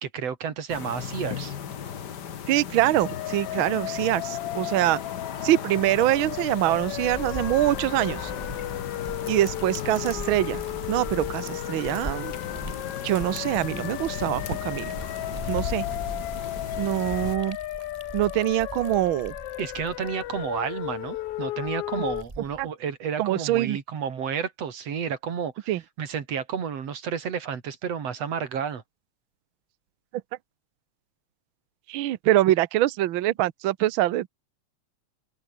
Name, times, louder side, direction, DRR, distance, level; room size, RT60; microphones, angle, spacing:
voice 1, 0.0-1.5 19.6-25.7 26.0-28.8, right 7 dB, 60° right, 3.5 m, -31 dB
sound 1, 0.7-17.4, left 8 dB, 50° left, 1.4 m, -36 dB
voice 2, 2.5-5.0 5.4-8.3 9.3-10.6 10.9-12.3 13.0-14.9 15.5-15.8 16.8-17.6 18.1-19.3 22.6-22.7 23.2-23.8 25.7-25.8 31.9-34.3, right 14 dB, 75° right, 1.1 m, -24 dB
sound 2, 3.0-22.2, left 15 dB, 70° left, 1.4 m, -35 dB
Liquid, 6.6-22.7, right 2 dB, 15° right, 2.1 m, -43 dB
open air
omnidirectional pair, 3.3 m